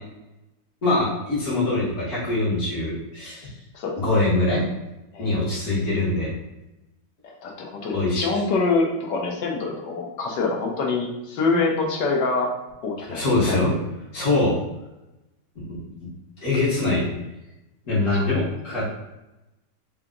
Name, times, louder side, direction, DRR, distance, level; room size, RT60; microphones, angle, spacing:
voice 1, 0.8-3.5 4.0-4.6 5.2-6.3 7.9-8.3 13.0-13.7 14.1-14.6 15.6-15.8 16.4-17.1 17.9-18.9, left 2 dB, 60° left, -8 dB, 2.0 m, -23 dB
voice 2, 7.2-12.5 12.8-13.6 18.1-18.3, left 3 dB, 90° left, -1 dB, 1.6 m, -25 dB
4.8 x 2.9 x 3.8 m, 0.97 s
omnidirectional pair, 1.8 m